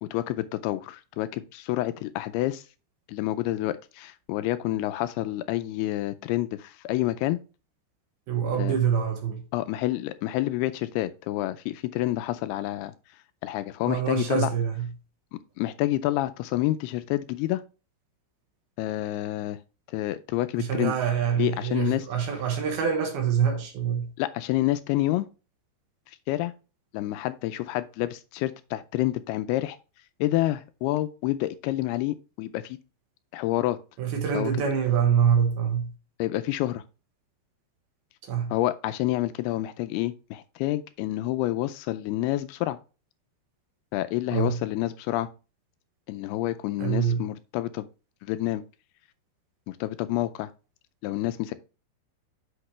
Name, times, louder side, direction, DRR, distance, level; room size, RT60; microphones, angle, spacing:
voice 1, 0.0-2.6 3.1-7.4 8.5-8.8 9.5-12.9 13.4-14.5 15.6-17.6 18.8-19.6 19.9-20.9 21.4-22.1 24.2-25.3 26.3-26.5 26.9-29.8 30.2-32.8 33.3-33.8 34.3-34.5 36.2-36.8 38.5-42.8 43.9-45.3 46.1-47.9 48.2-48.6 49.7-50.5 51.0-51.5, left 15 dB, 85° left, 2.4 m, -28 dB
voice 2, 8.3-9.4 13.9-14.9 20.6-24.1 34.0-35.9 38.2-38.5 44.3-44.6 46.8-47.3, right 8 dB, 70° right, 3.0 m, -25 dB
8.0 x 6.0 x 3.1 m
omnidirectional pair, 4.8 m